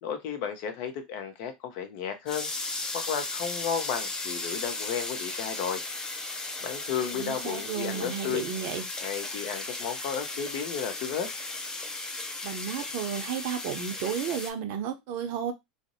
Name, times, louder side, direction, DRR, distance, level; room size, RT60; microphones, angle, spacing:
voice 1, 0.0-2.5 2.9-5.8 6.6-8.5 9.0-11.3, left 7 dB, 55° left, 0.6 m, -33 dB
sound 1, 2.3-14.5, left 2 dB, 15° left, 0.5 m, -36 dB
voice 2, 7.1-8.8 12.4-15.5, right 8 dB, 55° right, 0.5 m, -33 dB
2.5 x 2.0 x 2.6 m
hypercardioid pair, 90°, 4 cm